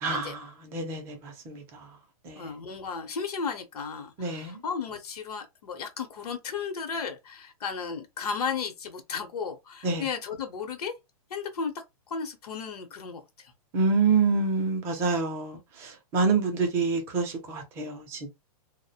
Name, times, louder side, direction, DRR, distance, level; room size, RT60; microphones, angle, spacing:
voice 1, 0.0-1.9 2.2-2.5 4.2-4.6 9.8-10.1 13.7-18.4, right 4 dB, 15° right, 0.4 m, -27 dB
voice 2, 2.3-10.9 11.3-11.7 12.1-13.5, left 5 dB, 85° left, 0.8 m, -34 dB
2.3 x 2.0 x 2.7 m
hypercardioid pair, 165°, 19 cm